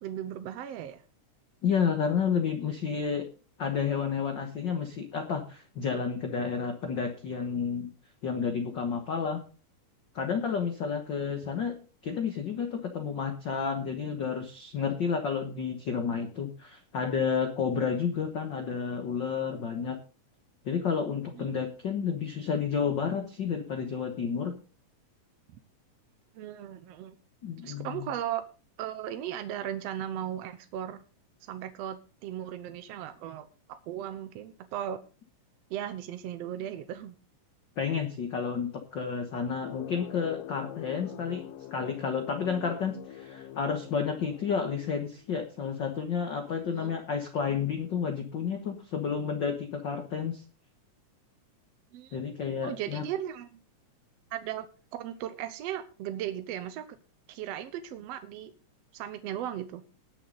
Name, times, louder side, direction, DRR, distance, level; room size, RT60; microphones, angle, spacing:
voice 1, 0.0-1.0 21.4-21.5 25.5-25.6 26.3-27.2 27.6-28.4 28.8-31.0 31.5-35.0 35.7-37.2 46.7-47.0 51.9-52.2 52.6-53.5 54.3-56.8 57.3-58.5 58.9-59.8, right 11 dB, 70° right, 9 dB, 1.6 m, -37 dB
voice 2, 1.6-3.3 3.6-7.9 8.2-9.4 10.1-11.7 12.0-20.0 20.6-24.5 27.4-28.1 37.8-41.4 41.7-50.4 52.1-53.0, left 6 dB, 50° left, 5 dB, 1.4 m, -31 dB
sound 1, 39.6-45.4, left 10 dB, 80° left, 1.3 m, -44 dB
20.0 x 7.0 x 4.0 m, 0.36 s
omnidirectional pair, 3.7 m